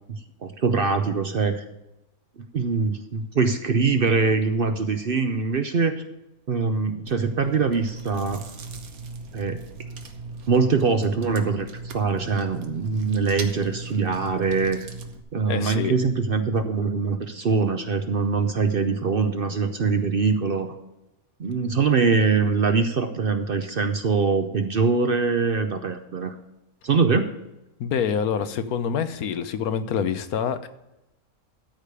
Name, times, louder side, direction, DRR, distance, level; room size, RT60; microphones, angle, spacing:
voice 1, 0.1-1.6 2.5-6.0 6.5-8.4 9.3-9.6 10.5-11.7 11.9-14.9 15.3-20.7 21.4-26.3 26.8-27.3, right 4 dB, 50° right, 8 dB, 0.8 m, -23 dB
Chewing mastication, 7.1-15.2, right 3 dB, 75° right, 1.5 m, -38 dB
voice 2, 15.5-15.9 27.8-30.7, left 7 dB, 80° left, 11 dB, 1.3 m, -26 dB
13.0 x 5.0 x 6.7 m, 0.94 s
omnidirectional pair, 1.5 m